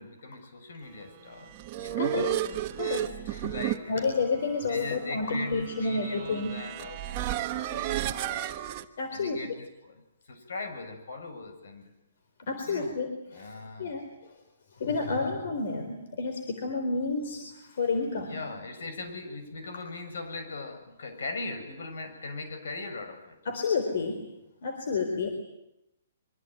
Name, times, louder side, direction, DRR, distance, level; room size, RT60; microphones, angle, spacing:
voice 1, 0.0-1.5 1.8-4.1 4.7-8.4 9.1-10.0 10.3-11.9 12.7-14.0 18.2-23.4, left 3 dB, 70° left, 8 dB, 7.7 m, -40 dB
sound 1, 1.3-8.8, right 13 dB, 25° right, 1.2 m, -33 dB
voice 2, 2.0-2.4 2.8-3.0 3.9-6.6 9.0-9.4 12.5-13.5 13.8-14.0 14.8-18.4 23.5-24.3 24.6-25.3, left 4 dB, 55° left, 6 dB, 4.0 m, -30 dB
25.0 x 24.5 x 9.3 m, 0.87 s
hypercardioid pair, 170°, 0 cm